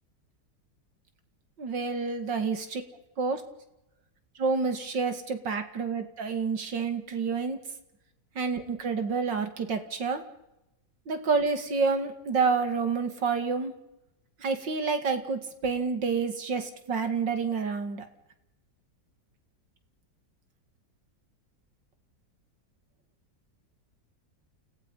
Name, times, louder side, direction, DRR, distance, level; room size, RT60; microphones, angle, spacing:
voice 1, 1.6-2.8 3.2-3.4 4.4-7.6 8.4-10.2 11.1-13.7 14.4-18.1, right 5 dB, 80° right, 7 dB, 3.0 m, -28 dB
29.5 x 18.5 x 5.6 m, 0.87 s
omnidirectional pair, 1.9 m